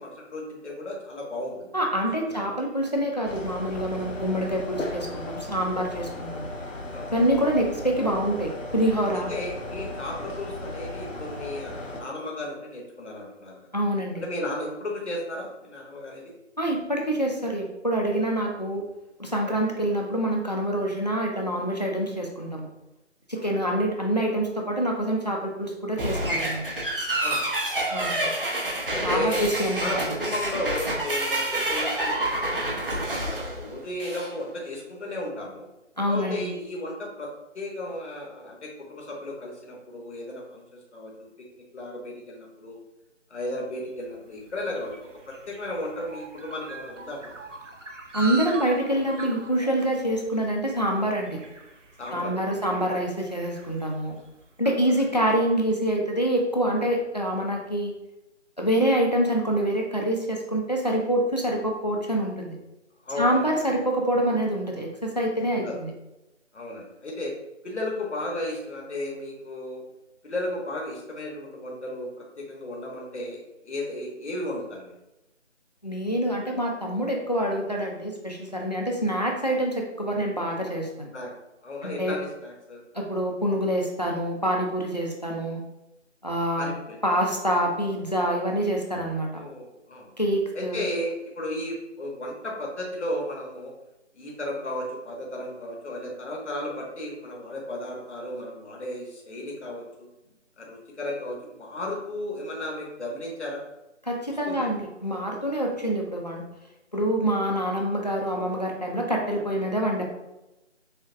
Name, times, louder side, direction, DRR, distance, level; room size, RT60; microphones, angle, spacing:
voice 1, 0.0-1.7 2.3-2.5 6.9-7.1 9.3-13.6 14.2-16.3 23.3-23.5 27.2-27.5 28.9-29.4 29.8-32.8 33.1-35.7 36.1-41.3 41.7-42.8 43.3-47.3 52.0-52.7 54.6-55.4 63.0-63.5 65.5-65.8 66.5-67.3 67.6-69.8 70.2-73.4 73.6-74.9 81.1-81.3 81.6-82.8 86.6-87.0 89.3-90.1 90.5-93.7 94.2-100.1 100.6-103.6 104.3-104.7, left 1 dB, 65° left, -2 dB, 1.1 m, -34 dB
voice 2, 1.7-6.5 7.1-9.3 13.7-14.2 16.6-18.8 19.2-22.7 23.3-26.6 27.9-28.3 29.0-30.1 36.0-36.5 48.1-51.4 52.1-54.2 54.6-57.9 58.6-62.6 63.2-65.9 75.8-81.1 81.8-82.2 82.9-85.6 86.2-86.7 87.0-89.3 90.2-90.8 104.1-106.4 106.9-110.0, right 1 dB, 35° left, 0 dB, 0.5 m, -26 dB
sound 1, 3.3-12.0, left 2 dB, 85° left, 0.8 m, -36 dB
sound 2, 26.0-34.3, right 1 dB, 45° right, 0.9 m, -28 dB
sound 3, 44.0-54.5, right 3 dB, 85° right, 0.8 m, -42 dB
6.3 x 2.1 x 2.5 m, 0.95 s
figure-of-eight pair, 170°, 37 cm